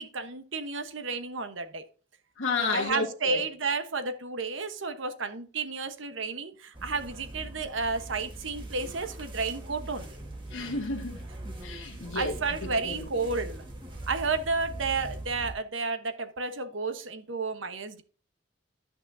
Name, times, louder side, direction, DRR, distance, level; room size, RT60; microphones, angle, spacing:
voice 1, 0.0-1.8 2.7-10.1 12.1-13.6 14.1-18.0, right 4 dB, 75° right, 1.1 m, -32 dB
voice 2, 2.4-3.4 10.5-11.2 11.6-12.4 12.6-13.1, left 3 dB, 90° left, 1.5 m, -31 dB
sound 1, 6.7-15.5, right 1 dB, 25° right, 1.7 m, -41 dB
13.0 x 6.0 x 2.7 m
head